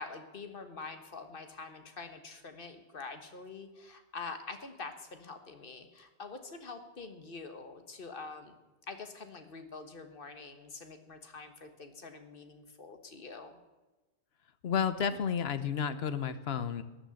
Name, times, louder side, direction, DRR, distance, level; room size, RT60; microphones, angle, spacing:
voice 1, 0.0-8.5 8.9-13.6, left 4 dB, 55° left, 7 dB, 1.5 m, -45 dB
voice 2, 14.6-16.8, left 7 dB, 70° left, 12 dB, 1.0 m, -31 dB
12.5 x 6.4 x 9.5 m, 1.1 s
omnidirectional pair, 1.1 m